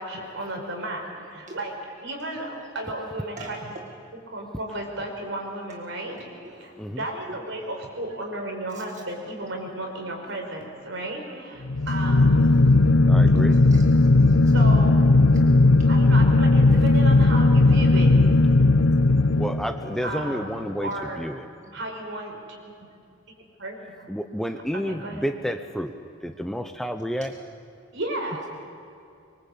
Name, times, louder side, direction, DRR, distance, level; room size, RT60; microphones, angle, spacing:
voice 1, 0.0-3.7 4.3-13.6 14.5-15.3 15.9-18.2 20.0-21.3 21.7-22.4 23.6-24.1 24.7-25.3 27.9-28.5, right 1 dB, 65° right, 2 dB, 5.4 m, -34 dB
voice 2, 7.3-7.6 8.9-9.0 12.7-12.8 13.7-14.5, right 3 dB, 40° right, 1 dB, 1.8 m, -44 dB
sound 1, 11.7-20.0, left 2 dB, 85° left, 1.0 m, -17 dB
voice 3, 13.1-13.6 19.4-21.5 24.1-25.9 26.2-27.3, equal, ahead, 7 dB, 0.8 m, -30 dB
25.0 x 23.0 x 8.6 m, 2.5 s
head